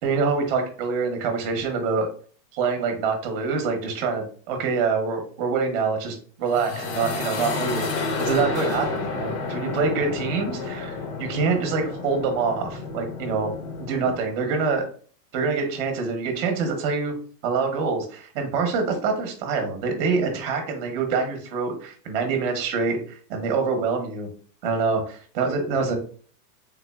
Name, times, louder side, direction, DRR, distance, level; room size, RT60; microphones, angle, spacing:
voice 1, 0.0-2.1 2.5-13.5 13.8-14.8 15.3-17.1 17.4-24.3 24.6-26.0, right 4 dB, 35° right, 5 dB, 0.9 m, -25 dB
sound 1, 6.4-14.2, left 3 dB, 55° left, 1.0 m, -30 dB
3.7 x 3.3 x 2.3 m, 0.43 s
supercardioid pair, 160°, 48 cm